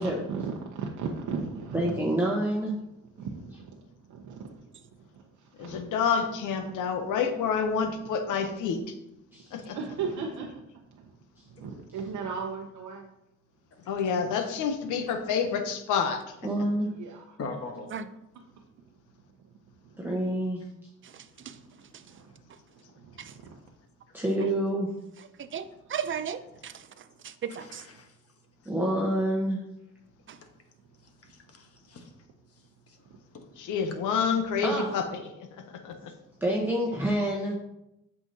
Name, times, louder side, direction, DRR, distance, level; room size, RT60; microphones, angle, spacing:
voice 1, 0.0-2.0 2.9-3.8 4.1-4.7 5.0-5.1 5.4-6.0 8.0-8.1 9.6-10.6 10.9-11.1 11.5-13.1 16.9-17.4 19.8-20.1 21.4-21.6 22.0-22.3 23.1-23.6 27.7-27.8, right 5 dB, 75° right, 0 dB, 0.8 m, -37 dB
voice 2, 1.7-2.7 9.3-9.6 11.4-11.5 14.3-14.4 16.4-16.9 20.0-20.6 24.1-24.9 28.7-29.6 34.6-35.0 36.4-37.6, right 1 dB, 5° right, -4 dB, 1.1 m, -27 dB
voice 3, 5.6-8.8 9.5-9.8 13.9-16.2 33.6-35.5 35.8-36.1, left 6 dB, 85° left, 6 dB, 0.9 m, -28 dB
voice 4, 17.4-18.0 27.6-28.2 31.2-32.1 32.9-33.0 33.3-33.5, left 3 dB, 50° left, 4 dB, 1.3 m, -41 dB
voice 5, 25.4-26.8 27.2-27.8 30.3-30.4, right 8 dB, 40° right, 12 dB, 0.6 m, -35 dB
8.1 x 5.8 x 2.8 m, 0.86 s
cardioid pair, 90°, 30 cm